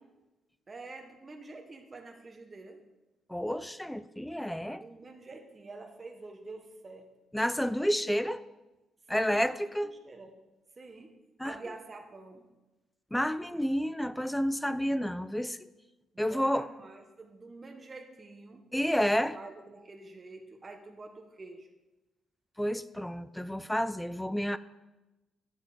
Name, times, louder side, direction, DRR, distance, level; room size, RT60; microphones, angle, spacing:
voice 1, 0.7-2.9 4.7-7.2 9.1-10.4 10.8-12.5 16.3-21.7, right 3 dB, 30° right, 3 dB, 1.0 m, -48 dB
voice 2, 3.3-4.8 7.3-8.4 9.1-9.9 11.4-11.6 13.1-15.6 16.2-16.7 18.7-19.4 22.6-24.6, equal, 5° left, 15 dB, 0.4 m, -30 dB
9.6 x 7.8 x 4.1 m, 1.1 s
cardioid pair, 90°, 0 cm